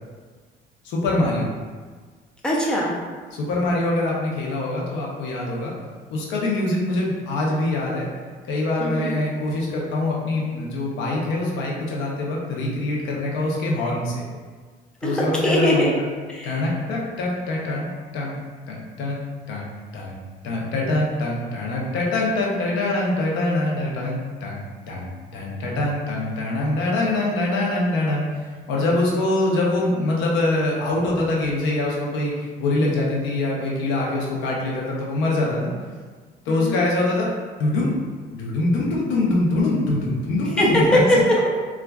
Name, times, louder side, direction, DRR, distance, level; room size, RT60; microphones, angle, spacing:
voice 1, 0.8-1.5 3.3-5.7 6.1-8.1 8.4-14.2 15.0-15.9 16.4-18.4 18.7-19.2 19.5-20.2 20.4-32.3 32.6-35.7 36.5-37.3 37.6-37.9 38.3-41.0, left 2 dB, 85° left, -3 dB, 0.7 m, -24 dB
voice 2, 2.4-2.9 8.8-9.2 15.0-15.9 16.3-16.7 36.5-36.8 40.6-41.5, equal, 5° left, -4 dB, 0.6 m, -21 dB
4.0 x 2.3 x 2.3 m, 1.5 s
cardioid pair, 105°, 19 cm